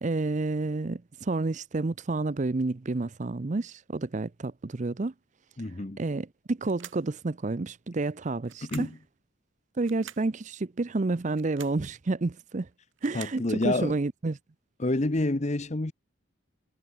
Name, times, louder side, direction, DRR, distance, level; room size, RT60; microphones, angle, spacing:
voice 1, 0.0-5.1 6.0-8.9 9.8-12.7 13.0-14.4, right 3 dB, 35° right, 0.5 m, -30 dB
voice 2, 5.6-6.0 8.7-9.0 13.1-14.0 14.8-15.9, left 2 dB, 35° left, 0.9 m, -28 dB
sound 1, 6.6-7.1 8.4-9.0 9.8-10.3 11.3-11.8 12.7-13.4, right 10 dB, 70° right, 6.6 m, -47 dB
head